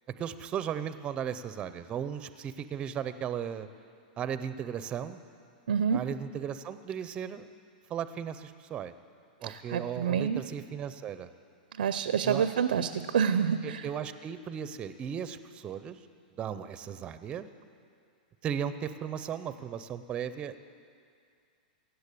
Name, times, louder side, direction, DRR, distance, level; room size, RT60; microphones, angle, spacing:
voice 1, 0.2-3.7 4.2-5.2 5.9-7.5 7.9-8.9 9.4-11.3 12.2-12.4 13.6-16.0 16.4-17.5 18.4-20.6, right 8 dB, 20° right, 12 dB, 0.5 m, -36 dB
voice 2, 5.7-6.0 9.4-10.4 11.8-13.8, right 7 dB, 90° right, 12 dB, 0.5 m, -28 dB
16.5 x 7.9 x 8.4 m, 2.3 s
supercardioid pair, 150°, 5 cm